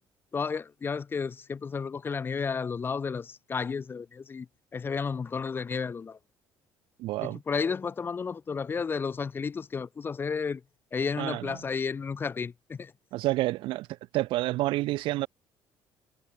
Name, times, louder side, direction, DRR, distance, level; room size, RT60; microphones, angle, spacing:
voice 1, 0.3-4.5 4.7-6.2 7.2-10.6 10.9-12.9, left 5 dB, 25° left, 0.6 m, -32 dB
voice 2, 7.0-7.4 11.2-11.6 13.1-15.3, right 18 dB, 75° right, 0.4 m, -29 dB
cardioid pair, 130°, 9 cm